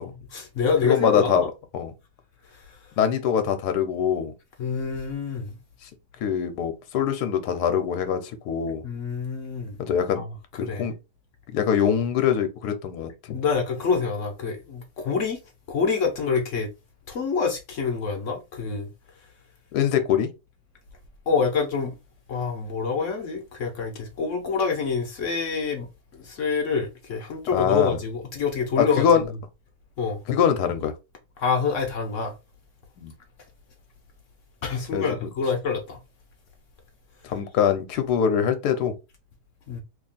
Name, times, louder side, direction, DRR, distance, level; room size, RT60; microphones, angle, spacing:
voice 1, 0.0-1.5 4.6-5.6 8.8-9.8 10.1-10.3 10.6-10.8 13.3-15.4 15.7-16.7 17.1-18.9 21.3-21.9 22.3-25.9 26.1-29.1 30.0-30.2 31.4-32.3 34.6-36.0 39.7-39.8, left 5 dB, 60° left, 1.0 m, -26 dB
voice 2, 0.8-1.5 1.7-1.9 3.0-4.3 6.2-8.8 9.8-10.2 10.5-10.9 11.5-13.4 19.7-20.3 27.5-28.0 28.8-29.2 30.3-30.9 33.0-33.1 34.9-35.0 37.2-38.9, left 8 dB, 80° left, 1.2 m, -23 dB
2.8 x 2.7 x 3.9 m
omnidirectional pair, 1.7 m